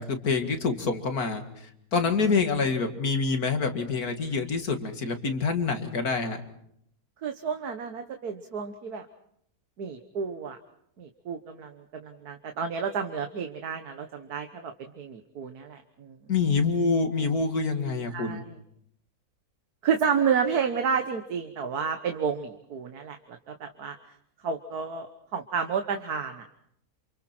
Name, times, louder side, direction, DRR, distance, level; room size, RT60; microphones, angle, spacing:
voice 1, 0.0-6.4 16.3-18.4, left 4 dB, 75° left, 6 dB, 2.6 m, -26 dB
voice 2, 7.2-9.1 9.8-10.6 11.0-16.2 18.1-18.4 19.8-24.0 24.4-26.4, right 6 dB, 85° right, 6 dB, 1.8 m, -31 dB
28.5 x 28.5 x 4.4 m, 0.71 s
omnidirectional pair, 1.6 m